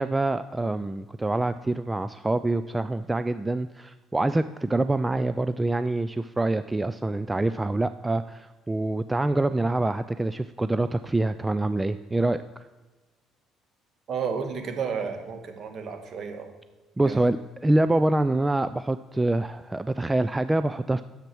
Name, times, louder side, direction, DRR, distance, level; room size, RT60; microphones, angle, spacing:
voice 1, 0.0-12.6 17.0-17.4 17.6-21.0, right 2 dB, 15° right, 12 dB, 0.5 m, -25 dB
voice 2, 14.1-16.5 17.0-17.2, right 6 dB, 50° right, 5 dB, 2.0 m, -32 dB
10.5 x 7.4 x 6.3 m, 1.2 s
hypercardioid pair, 50°, 0 cm